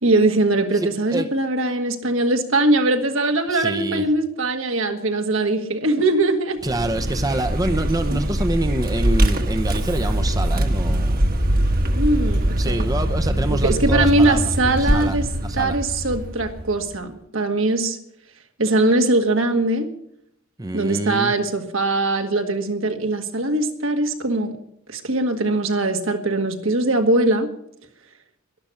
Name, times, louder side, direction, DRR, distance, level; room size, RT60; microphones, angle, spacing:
voice 1, 0.0-6.6 11.9-12.8 13.5-15.3 15.5-18.0 18.6-19.9 20.7-24.5 24.9-27.5, right 2 dB, 75° right, 5 dB, 1.8 m, -21 dB
voice 2, 0.7-1.3 3.5-4.1 6.6-11.3 12.6-14.4 14.7-15.8 20.6-21.3, right 2 dB, 20° right, 9 dB, 0.7 m, -26 dB
Vehicle, 6.6-17.0, right 1 dB, 45° right, 1.4 m, -22 dB
12.0 x 11.5 x 8.3 m, 0.74 s
head